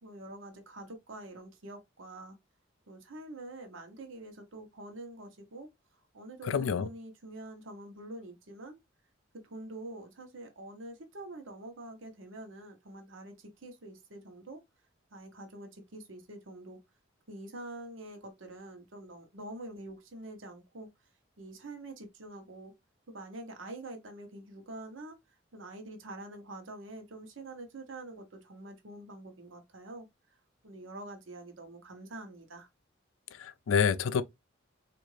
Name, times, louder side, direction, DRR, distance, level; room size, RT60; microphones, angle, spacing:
voice 1, 0.0-2.4 2.9-5.7 6.1-8.8 9.3-14.6 15.1-16.8 17.3-20.9 21.4-22.7 23.1-25.2 25.5-30.1 30.6-32.7, right 1 dB, 70° right, 0.9 m, -46 dB
voice 2, 6.5-6.9 33.4-34.2, left 6 dB, 85° left, 0.4 m, -27 dB
3.7 x 2.5 x 3.1 m
head